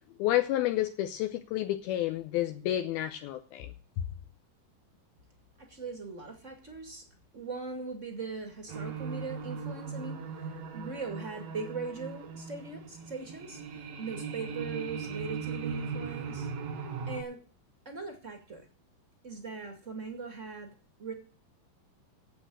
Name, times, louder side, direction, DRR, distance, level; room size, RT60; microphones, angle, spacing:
voice 1, 0.2-3.7, left 14 dB, 80° left, 2.5 m, -30 dB
voice 2, 5.6-7.0 7.3-16.5 17.1-17.4 17.8-18.7 19.2-20.7 21.0-21.1, right 4 dB, 25° right, 1.6 m, -40 dB
sound 1, 8.7-17.2, right 5 dB, 65° right, 1.7 m, -38 dB
8.7 x 8.2 x 9.2 m
omnidirectional pair, 4.6 m